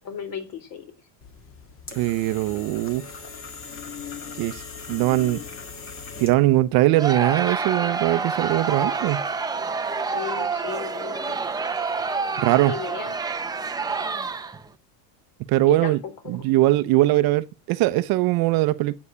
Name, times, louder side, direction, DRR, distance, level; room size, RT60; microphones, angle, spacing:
voice 1, 0.0-0.9 8.8-9.0 10.1-11.4 12.6-13.2 15.7-16.5, left 6 dB, 45° left, 3.6 m, -34 dB
sound 1, 1.2-6.6, left 5 dB, 25° left, 1.8 m, -39 dB
voice 2, 1.9-3.1 4.4-4.6 4.9-5.4 6.2-9.2 12.4-12.7 15.5-16.0 16.3-18.9, right 17 dB, 45° right, 0.8 m, -21 dB
Crowd, 7.0-14.7, right 4 dB, 10° right, 0.7 m, -28 dB
11.5 x 8.6 x 8.5 m
cardioid pair, 150°, 49 cm